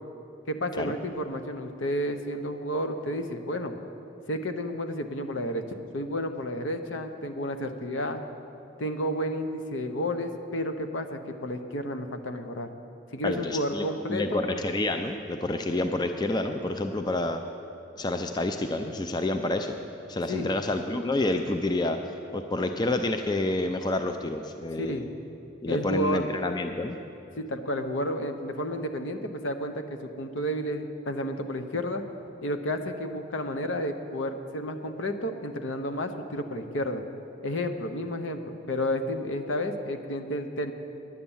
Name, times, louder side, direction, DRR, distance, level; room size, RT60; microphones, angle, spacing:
voice 1, 0.5-3.8 4.3-5.6 5.9-8.2 8.8-12.7 13.1-14.4 20.3-20.5 24.8-25.1 25.7-26.2 27.3-32.0 32.4-37.0 37.4-40.7, equal, 70° left, 7 dB, 0.8 m, -31 dB
voice 2, 13.2-17.4 18.0-19.8 20.1-22.0 22.3-25.1 25.6-27.0, left 2 dB, 20° left, 6 dB, 0.4 m, -28 dB
10.0 x 9.4 x 7.2 m, 2.7 s
head